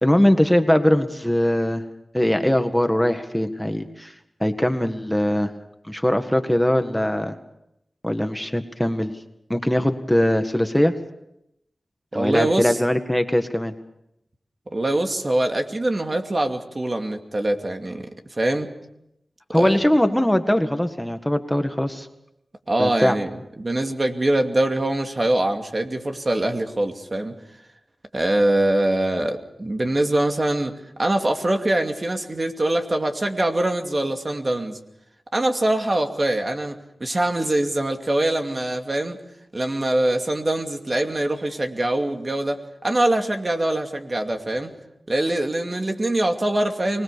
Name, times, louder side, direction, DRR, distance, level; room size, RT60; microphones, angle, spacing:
voice 1, 0.0-1.8 2.1-4.1 4.4-5.5 5.9-7.3 8.0-9.1 9.5-10.9 12.1-13.7 19.5-22.1 22.8-23.2, left 1 dB, 10° left, 7 dB, 1.7 m, -21 dB
voice 2, 12.1-12.7 14.7-18.1 18.4-18.7 19.5-19.8 22.7-27.4 28.1-30.7 31.0-34.8 35.3-39.2 39.5-44.7 45.1-47.0, right 1 dB, 45° right, 4 dB, 2.5 m, -23 dB
25.0 x 20.0 x 6.9 m, 0.82 s
cardioid pair, 45°, 0 cm